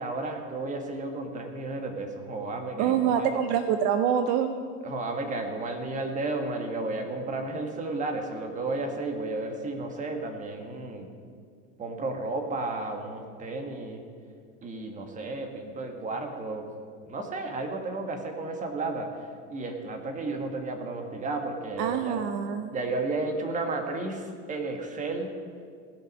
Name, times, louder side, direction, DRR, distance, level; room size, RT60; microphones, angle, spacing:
voice 1, 0.0-3.4 4.8-11.1 11.8-14.0 14.6-16.7 17.0-22.2 22.7-25.3, right 2 dB, 20° right, 4 dB, 1.6 m, -33 dB
voice 2, 2.8-4.5 21.8-22.7, right 8 dB, 50° right, 9 dB, 0.7 m, -25 dB
17.0 x 6.5 x 5.4 m, 2.1 s
supercardioid pair, 130°, 35 cm